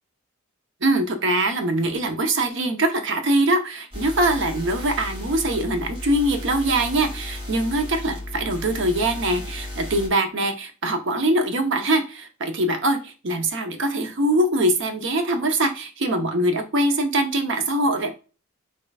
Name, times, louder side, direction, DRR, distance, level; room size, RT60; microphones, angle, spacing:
voice 1, 0.8-18.1, right 1 dB, 60° right, 6 dB, 0.8 m, -23 dB
sound 1, 3.9-10.1, left 1 dB, 25° right, 2.2 m, -34 dB
5.3 x 3.8 x 2.3 m, 0.33 s
head